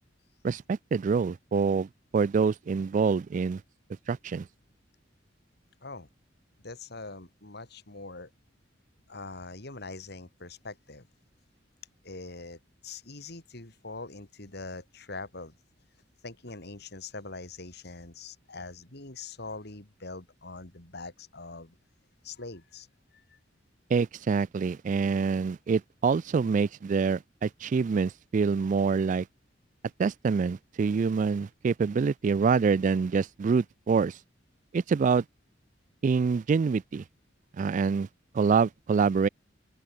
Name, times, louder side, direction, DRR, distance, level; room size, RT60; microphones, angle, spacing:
voice 1, 0.4-3.6 4.1-4.5 23.9-29.3 30.0-34.2 34.7-35.2 36.0-37.0 37.6-38.1 38.3-39.3, right 5 dB, 45° right, 0.3 m, -26 dB
voice 2, 6.6-8.3 9.1-11.1 12.0-15.6 16.2-21.8 22.2-22.9 23.1-23.4, left 3 dB, 60° left, 3.7 m, -43 dB
open air
head